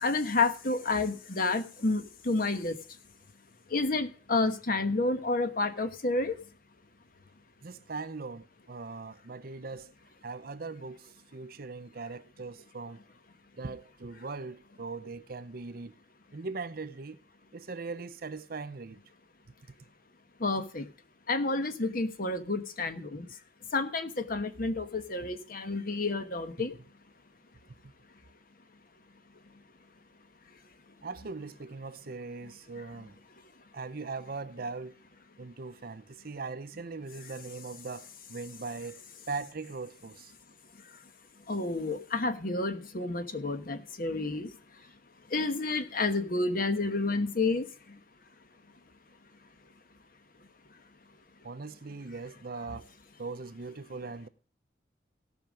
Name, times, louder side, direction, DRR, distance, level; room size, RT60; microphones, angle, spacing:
voice 1, 0.0-2.8 3.7-6.3 20.4-20.8 21.3-23.2 23.7-26.7 41.5-44.5 45.3-47.6, left 3 dB, 55° left, 1.2 m, -30 dB
voice 2, 7.6-9.9 10.2-13.0 13.6-16.0 16.3-17.2 17.5-19.0 31.0-33.2 33.7-34.9 35.4-40.3 51.4-52.9 53.2-54.3, right 4 dB, 55° right, 0.7 m, -40 dB
17.0 x 5.7 x 5.1 m
head